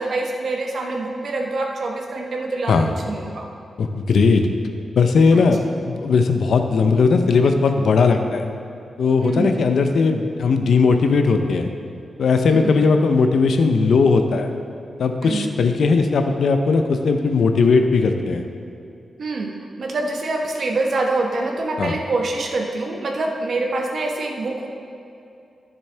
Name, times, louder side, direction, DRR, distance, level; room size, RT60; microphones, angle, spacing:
voice 1, 0.0-3.5 5.3-5.5 9.2-9.6 12.5-12.8 15.2-15.6 19.2-24.7, right 2 dB, 50° right, 1 dB, 1.0 m, -25 dB
voice 2, 3.8-4.5 5.0-8.5 9.0-11.7 12.2-14.5 15.0-18.4 21.8-21.9, left 4 dB, 65° left, 6 dB, 0.6 m, -18 dB
12.5 x 6.9 x 3.3 m, 2.7 s
wide cardioid pair, 165°, 0 cm